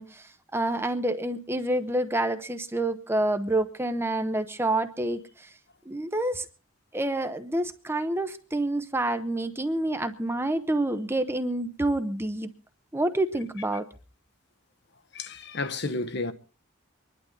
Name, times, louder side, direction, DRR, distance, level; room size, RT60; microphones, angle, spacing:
voice 1, 0.0-5.5 5.9-6.4 6.9-12.5 12.9-13.9, right 1 dB, 10° right, 0.8 m, -28 dB
voice 2, 15.1-16.3, left 3 dB, 55° left, 1.0 m, -31 dB
25.0 x 11.5 x 3.9 m
head